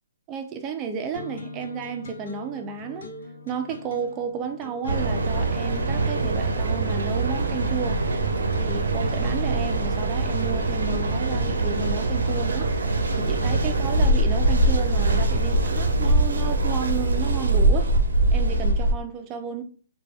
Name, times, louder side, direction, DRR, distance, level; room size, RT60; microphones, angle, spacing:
voice 1, 0.3-3.1 3.5-8.0 8.6-17.9 18.3-19.6, right 6 dB, 20° right, 0.3 m, -32 dB
sound 1, 1.1-15.9, left 3 dB, 80° left, 0.5 m, -42 dB
Mechanical fan, 4.9-18.9, right 2 dB, 85° right, 0.5 m, -23 dB
3.2 x 2.2 x 2.3 m
hypercardioid pair, 155°, 0 cm